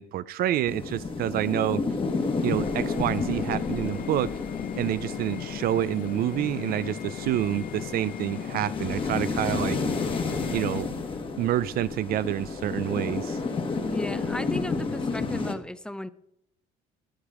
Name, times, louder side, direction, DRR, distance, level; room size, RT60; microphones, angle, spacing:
voice 1, 0.0-1.8 2.4-4.3 4.7-9.8 10.5-11.0 11.4-13.4, right 12 dB, 60° right, 16 dB, 0.4 m, -28 dB
sound 1, 0.7-15.5, left 4 dB, 30° left, 1.5 m, -31 dB
sound 2, 1.8-10.8, left 10 dB, 55° left, 0.7 m, -37 dB
voice 2, 13.8-16.1, left 1 dB, 5° left, 14 dB, 0.5 m, -35 dB
12.0 x 8.1 x 4.9 m, 0.75 s
cardioid pair, 110°, 17 cm